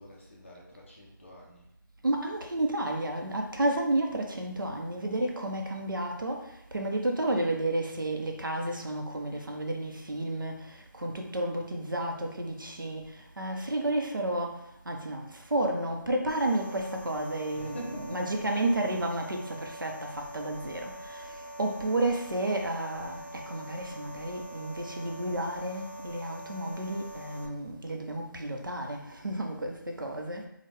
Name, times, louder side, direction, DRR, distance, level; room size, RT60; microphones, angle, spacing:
voice 1, 0.0-1.7 17.5-18.6, equal, 35° left, -2 dB, 0.8 m, -46 dB
voice 2, 2.0-21.3 21.6-30.5, right 1 dB, 75° right, 2 dB, 0.8 m, -31 dB
sound 1, 16.3-27.5, right 1 dB, 35° right, 0.7 m, -44 dB
4.6 x 2.4 x 3.4 m, 0.78 s
figure-of-eight pair, 160°, 11 cm